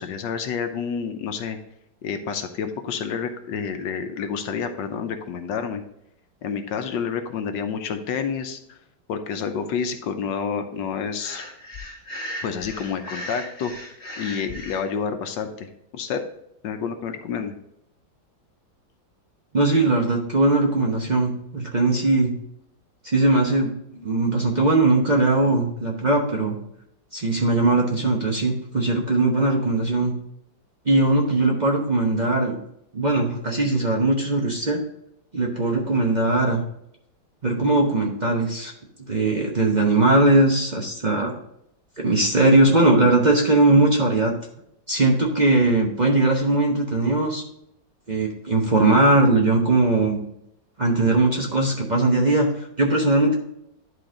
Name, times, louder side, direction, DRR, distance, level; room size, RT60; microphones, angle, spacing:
voice 1, 0.0-1.6 2.0-5.8 6.4-8.8 9.1-11.4 12.4-13.7 14.2-16.2 16.6-17.5, left 6 dB, 75° left, 7 dB, 1.4 m, -29 dB
Breathing, 11.2-14.8, left 1 dB, 35° left, 1.5 m, -36 dB
voice 2, 19.5-22.3 23.0-26.6 27.1-30.1 30.8-32.6 32.9-34.8 35.3-36.6 37.4-38.7 39.0-41.3 42.0-44.3 44.9-47.4 48.1-50.2 50.8-53.3, right 2 dB, 40° right, -1 dB, 0.7 m, -20 dB
11.0 x 3.9 x 3.8 m, 0.78 s
omnidirectional pair, 2.1 m